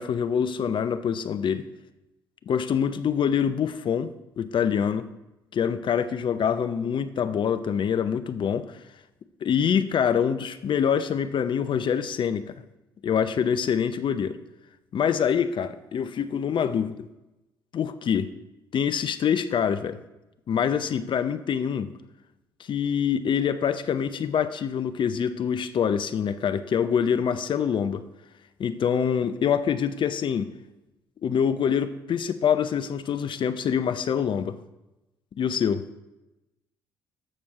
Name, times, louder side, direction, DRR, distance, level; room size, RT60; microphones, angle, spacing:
voice 1, 0.0-1.6 2.5-5.1 5.5-8.8 9.4-12.5 13.0-14.4 14.9-17.1 17.7-18.3 18.7-20.0 20.5-21.9 22.6-28.0 28.6-30.5 31.2-34.6 35.4-35.9, left 7 dB, 45° left, 12 dB, 0.6 m, -25 dB
15.5 x 6.3 x 2.9 m, 0.98 s
figure-of-eight pair, 50°, 12 cm